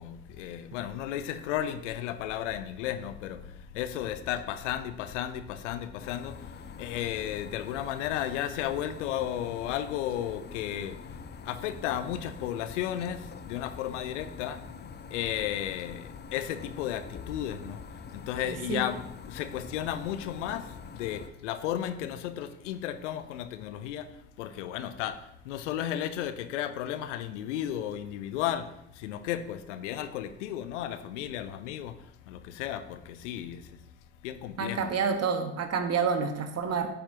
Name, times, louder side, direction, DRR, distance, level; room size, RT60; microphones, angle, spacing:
voice 1, 0.0-11.0 11.4-14.6 15.1-17.8 18.1-32.0 32.3-33.8 34.2-34.9, left 11 dB, 70° left, 11 dB, 0.8 m, -34 dB
sound 1, 6.0-21.3, left 5 dB, 25° left, 0.9 m, -45 dB
voice 2, 18.4-18.8 34.6-36.9, right 5 dB, 40° right, 6 dB, 1.6 m, -28 dB
14.0 x 8.7 x 2.9 m, 0.79 s
figure-of-eight pair, 55°, 38 cm